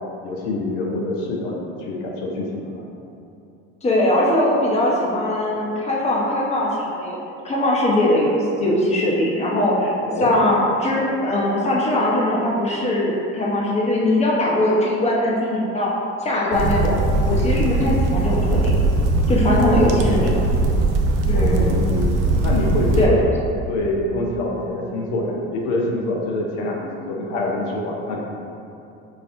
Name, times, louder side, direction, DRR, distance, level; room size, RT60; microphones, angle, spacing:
voice 1, 0.2-2.8 10.0-10.3 18.0-18.1 20.1-20.6 21.3-22.1 22.4-23.4 23.7-28.2, left 2 dB, 75° left, -2 dB, 0.7 m, -26 dB
voice 2, 3.8-7.2 7.4-9.9 10.2-15.9 16.2-17.0 17.3-18.8 19.3-20.5 21.3-21.7 23.0-23.1, left 1 dB, 20° left, -4 dB, 0.8 m, -20 dB
sound 1, 16.5-23.1, right 2 dB, 90° right, 0.5 m, -20 dB
5.1 x 2.4 x 2.5 m, 2.7 s
supercardioid pair, 90°, 34 cm